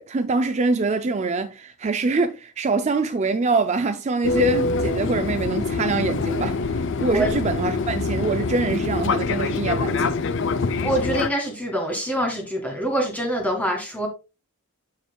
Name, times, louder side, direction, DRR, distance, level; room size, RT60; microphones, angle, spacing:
voice 1, 0.0-10.2, right 3 dB, 30° right, 0.4 m, -24 dB
Fixed-wing aircraft airplane, 4.2-11.3, left 4 dB, 60° left, 0.5 m, -25 dB
voice 2, 10.8-14.1, right 1 dB, 5° left, 1.9 m, -25 dB
12.0 x 4.4 x 2.3 m
head